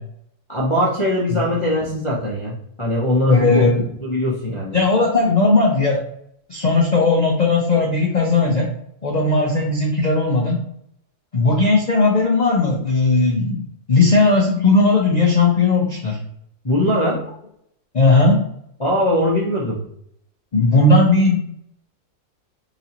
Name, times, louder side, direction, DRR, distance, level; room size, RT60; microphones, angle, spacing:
voice 1, 0.5-3.6 4.0-4.8 16.6-17.2 18.8-19.8, left 1 dB, 25° left, -6 dB, 0.6 m, -21 dB
voice 2, 3.3-3.8 4.7-6.0 6.5-8.7 9.0-10.6 11.3-13.6 13.9-16.2 17.9-18.4 20.5-21.4, left 3 dB, 65° left, -2 dB, 0.4 m, -17 dB
4.0 x 3.1 x 2.8 m, 0.72 s
omnidirectional pair, 1.7 m